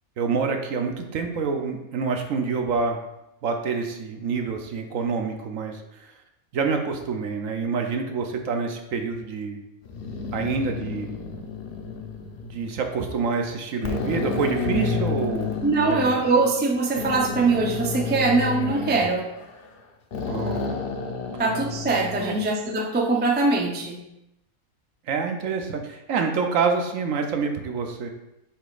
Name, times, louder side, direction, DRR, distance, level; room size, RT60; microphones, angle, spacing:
voice 1, 0.2-3.0 3.4-6.1 6.5-9.6 10.3-11.1 12.4-15.5 15.9-16.0 20.2-21.0 22.2-22.3 25.1-28.1, right 5 dB, 65° right, 4 dB, 1.0 m, -27 dB
sound 1, 9.9-12.7 13.3-13.4 13.8-16.1 16.9-19.8 20.1-22.5, left 4 dB, 55° left, 0.7 m, -30 dB
voice 2, 15.6-19.3 21.4-24.0, right 3 dB, 15° right, -1 dB, 0.3 m, -22 dB
7.6 x 5.0 x 2.5 m, 0.88 s
omnidirectional pair, 1.6 m